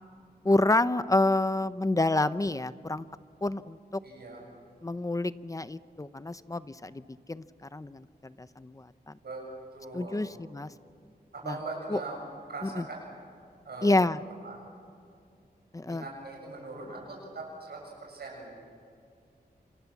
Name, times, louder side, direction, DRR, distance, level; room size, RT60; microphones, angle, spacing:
voice 1, 0.4-3.1 3.4-4.0 4.8-9.1 9.9-10.7 11.5-11.6 11.9-12.0 12.6-12.8 13.8-14.2 15.7-16.0, left 2 dB, 20° left, 14 dB, 0.7 m, -28 dB
voice 2, 4.0-4.4 9.2-10.2 11.3-12.2 12.5-13.1 13.6-14.0 14.4-14.6 15.8-18.6, right 3 dB, 75° right, -1 dB, 7.5 m, -41 dB
28.5 x 27.5 x 7.3 m, 2.4 s
wide cardioid pair, 130°, 17 cm